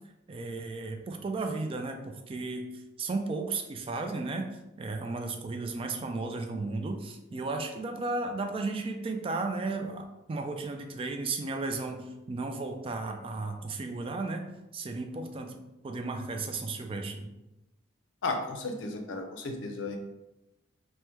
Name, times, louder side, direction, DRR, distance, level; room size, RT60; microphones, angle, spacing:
voice 1, 0.3-2.7 3.0-4.5 4.8-14.4 14.7-17.3, right 3 dB, 30° right, 5 dB, 0.3 m, -34 dB
voice 2, 18.2-20.0, left 3 dB, 85° left, 4 dB, 0.5 m, -34 dB
3.4 x 2.1 x 2.9 m, 0.95 s
head